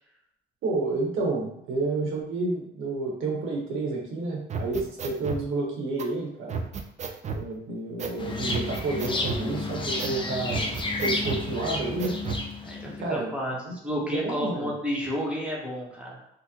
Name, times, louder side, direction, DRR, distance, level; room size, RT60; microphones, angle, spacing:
voice 1, 0.6-6.5 7.3-10.7 11.0-12.2 13.0-13.3 13.6-13.7 14.1-14.7, right 3 dB, 85° right, -1 dB, 1.0 m, -30 dB
sound 1, 4.5-5.4 6.0-6.1 6.5-7.4 8.0-8.2 8.5-9.5 10.0-10.2 10.5-11.4 12.0-12.5, right 5 dB, 35° right, 0.4 m, -32 dB
sound 2, 8.2-13.2, left 2 dB, 25° left, 0.5 m, -31 dB
voice 2, 10.0-10.7 12.6-16.2, equal, 5° right, -4 dB, 0.9 m, -32 dB
3.8 x 2.0 x 2.8 m, 0.79 s
cardioid pair, 90°, 20 cm